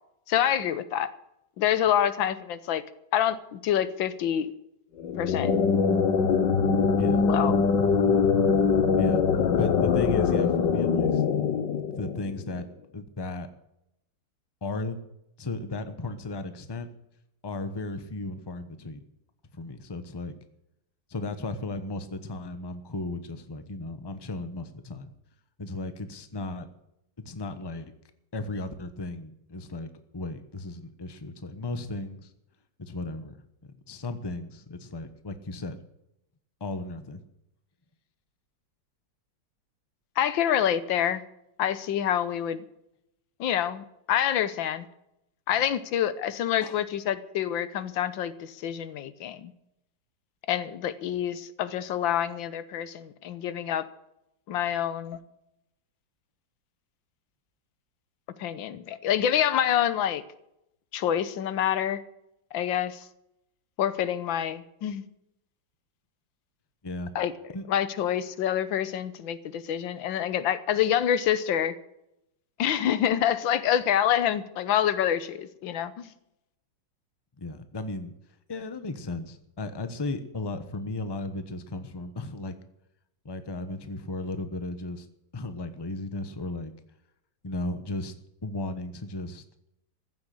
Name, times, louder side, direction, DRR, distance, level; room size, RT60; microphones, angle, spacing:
voice 1, 0.3-1.1 1.6-2.8 3.1-4.5 5.2-5.5 7.2-7.5 40.2-41.2 41.6-42.6 43.4-44.9 45.5-49.5 50.5-53.9 54.5-55.2 58.4-60.2 60.9-62.0 62.5-63.0 63.8-65.0 67.2-67.3 67.7-71.7 72.6-76.1, left 10 dB, 85° left, 15 dB, 1.6 m, -27 dB
sound 1, 5.0-12.6, left 5 dB, 70° left, 1.8 m, -23 dB
voice 2, 9.6-11.2 12.0-12.7 12.9-13.5 14.6-15.0 15.4-16.9 17.4-19.0 19.5-20.3 21.1-25.1 25.6-26.7 27.2-27.9 28.3-32.3 32.8-33.4 33.6-35.8 36.6-37.2 46.6-46.8 66.8-67.1 67.5-67.6 77.4-78.1 78.5-82.5 83.2-85.1 85.3-86.7 87.4-88.1 88.4-89.4, left 2 dB, 20° left, 10 dB, 0.8 m, -35 dB
15.0 x 7.7 x 10.0 m, 0.83 s
omnidirectional pair, 2.0 m